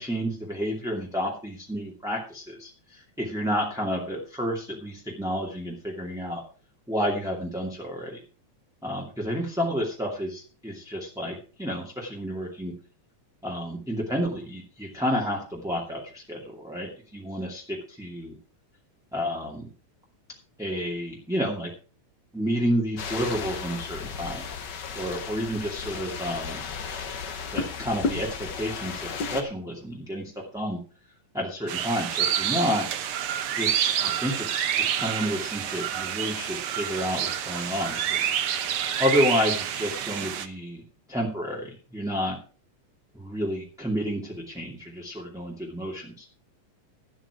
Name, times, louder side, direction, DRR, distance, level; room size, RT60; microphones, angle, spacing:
voice 1, 0.0-6.4 6.9-8.2 8.8-12.7 13.4-18.3 19.1-19.7 20.6-21.7 22.3-24.4 24.9-26.6 27.5-30.8 31.3-32.9 33.6-34.7 35.0-38.3 39.0-40.8 41.1-42.4 43.1-46.2, equal, ahead, -4 dB, 2.0 m, -30 dB
sound 1, 23.0-29.4, left 5 dB, 50° left, 1.5 m, -34 dB
sound 2, 31.7-40.5, right 9 dB, 65° right, 1.6 m, -28 dB
13.0 x 9.2 x 4.8 m, 0.37 s
omnidirectional pair, 3.3 m